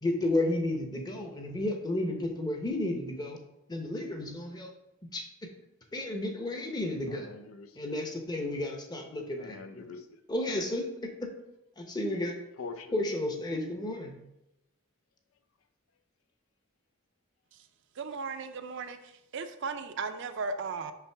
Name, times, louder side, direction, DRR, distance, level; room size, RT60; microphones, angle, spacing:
voice 1, 0.0-3.4 3.7-4.7 5.1-5.3 5.9-7.3 7.7-9.8 10.3-11.3 11.8-12.4 12.9-14.2, left 1 dB, 20° left, 3 dB, 0.8 m, -32 dB
voice 2, 7.1-7.9 9.4-10.2 12.6-13.0, left 4 dB, 85° left, 10 dB, 0.5 m, -44 dB
voice 3, 18.0-19.0 19.3-20.9, right 4 dB, 60° right, 9 dB, 0.5 m, -36 dB
5.8 x 5.6 x 3.4 m, 0.88 s
head